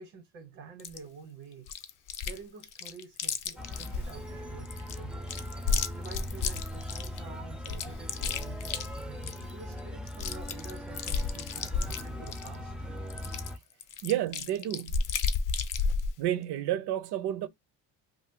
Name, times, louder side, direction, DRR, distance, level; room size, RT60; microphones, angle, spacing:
voice 1, 0.0-1.7 2.2-5.3 5.9-8.9 9.5-12.7, right 5 dB, 85° right, 1.1 m, -48 dB
Chewing mastication, 0.8-1.0 1.7-2.4 2.6-4.1 4.7-7.2 7.6-9.5 9.8-9.9 10.1-12.6 13.1-16.1, left 5 dB, 45° left, 0.6 m, -32 dB
sound 1, 3.6-13.6, equal, ahead, 0.3 m, -40 dB
voice 2, 14.0-15.1 16.2-17.5, right 12 dB, 60° right, 0.6 m, -31 dB
2.6 x 2.3 x 3.6 m
cardioid pair, 115°, 44 cm